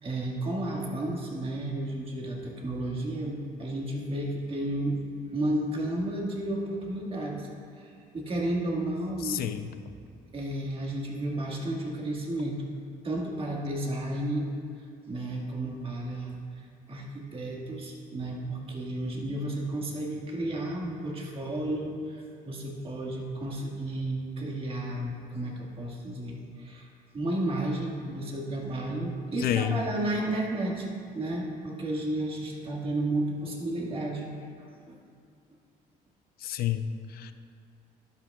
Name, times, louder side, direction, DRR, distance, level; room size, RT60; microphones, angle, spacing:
voice 1, 0.0-5.0 5.3-7.5 7.8-9.4 10.3-12.6 13.0-14.5 15.1-26.9 27.1-30.9 31.1-34.3 34.6-35.0, right 1 dB, 35° right, -2 dB, 1.9 m, -32 dB
voice 2, 9.2-9.8 29.4-29.8 36.4-37.3, left 10 dB, 65° left, 10 dB, 0.5 m, -30 dB
13.5 x 11.0 x 2.4 m, 2.3 s
cardioid pair, 110°, 17 cm